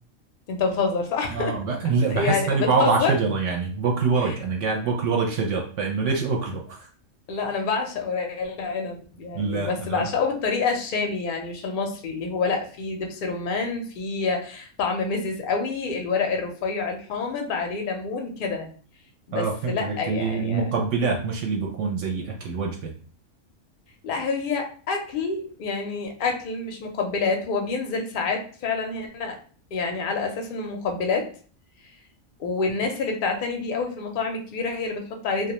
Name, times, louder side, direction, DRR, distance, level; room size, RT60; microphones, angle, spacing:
voice 1, 0.5-1.6 2.1-3.1 4.2-4.3 6.0-6.1 7.3-18.7 19.3-20.6 24.0-29.4 29.7-31.3 32.4-35.5, left 4 dB, 60° left, 2 dB, 0.5 m, -27 dB
voice 2, 1.3-6.9 9.3-10.1 19.3-22.9, right 4 dB, 70° right, 1 dB, 0.8 m, -25 dB
2.3 x 2.2 x 2.8 m, 0.43 s
omnidirectional pair, 1.4 m